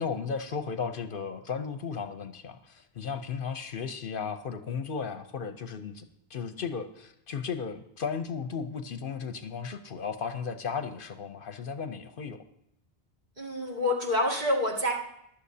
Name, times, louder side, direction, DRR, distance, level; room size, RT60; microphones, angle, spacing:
voice 1, 0.0-12.4, left 6 dB, 65° left, 9 dB, 0.8 m, -35 dB
voice 2, 13.4-14.9, left 1 dB, 45° right, -2 dB, 2.3 m, -27 dB
15.0 x 11.5 x 2.7 m, 0.77 s
omnidirectional pair, 1.0 m